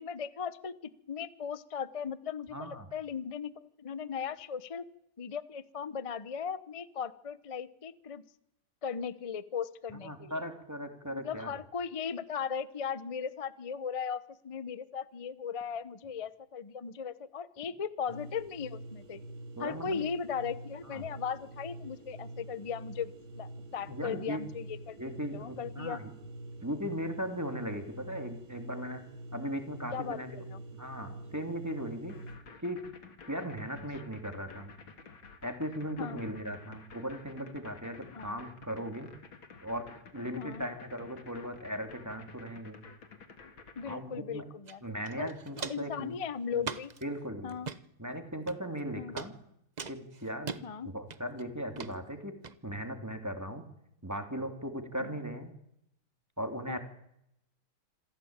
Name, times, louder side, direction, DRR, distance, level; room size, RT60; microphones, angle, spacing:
voice 1, 0.0-4.9 5.2-8.2 8.8-10.4 11.1-19.2 19.6-25.0 25.3-26.0 29.9-30.6 36.0-36.2 38.1-38.4 40.4-40.6 43.8-44.8 45.2-45.3 45.7-46.9 47.4-47.7 48.9-49.2 50.6-50.9 56.7-56.8, left 7 dB, 50° left, 16 dB, 0.4 m, -37 dB
voice 2, 2.5-2.9 9.9-11.5 19.6-20.0 20.8-21.0 23.9-24.4 25.0-26.1 26.6-29.0 29.3-30.4 30.7-32.1 32.6-32.8 33.3-34.7 35.4-39.1 39.6-39.9 40.1-42.8 43.9-44.4 44.8-46.1 47.0-47.6 48.0-49.3 49.9-52.3 52.6-53.6 54.0-55.5 56.4-56.8, equal, 10° right, 6 dB, 2.8 m, -38 dB
sound 1, 18.1-32.4, right 1 dB, 75° right, 3.9 m, -46 dB
sound 2, 32.1-44.0, left 5 dB, 75° left, 3.1 m, -51 dB
Walk footsteps, 44.7-44.8 45.0-45.9 46.6-47.0 47.5-47.8 48.5-48.8 49.2-49.3 49.8-50.6 51.1-51.4 51.8-51.9 52.4-52.5, right 5 dB, 50° right, 0.5 m, -40 dB
27.0 x 15.5 x 8.9 m, 0.79 s
omnidirectional pair, 2.2 m